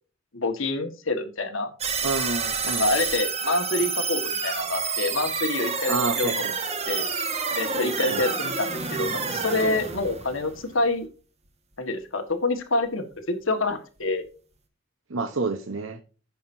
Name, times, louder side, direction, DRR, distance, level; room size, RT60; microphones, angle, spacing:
voice 1, 0.3-1.7 2.8-6.4 6.9-7.1 7.5-11.1 11.8-14.3, left 2 dB, 85° left, 7 dB, 1.6 m, -27 dB
sound 1, 1.8-11.1, right 5 dB, 35° right, 1.6 m, -29 dB
voice 2, 2.0-2.9 5.9-6.5 8.1-8.2 15.1-16.0, right 3 dB, 85° right, 6 dB, 1.0 m, -28 dB
15.5 x 5.8 x 2.7 m, 0.35 s
head